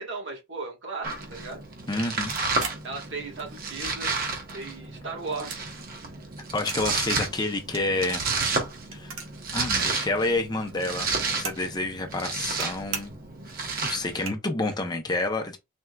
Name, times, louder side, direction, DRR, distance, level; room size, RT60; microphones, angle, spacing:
voice 1, 0.0-1.6 2.8-4.2 4.5-5.8, right 3 dB, 65° right, 1.7 m, -36 dB
Domestic sounds home sounds, 1.0-14.3, right 4 dB, 45° right, 0.9 m, -31 dB
voice 2, 1.9-2.4 6.5-8.2 8.9-9.2 9.5-13.1 13.8-15.6, left 2 dB, 20° left, 0.6 m, -29 dB
sound 1, 2.3-3.7 4.1-4.9 5.2-6.8 7.1-9.5 9.8-9.9 10.0-11.7 12.1-12.7 12.9-13.3 13.8-13.9 14.1-14.7, right 6 dB, 90° right, 1.1 m, -39 dB
4.3 x 3.5 x 2.3 m
head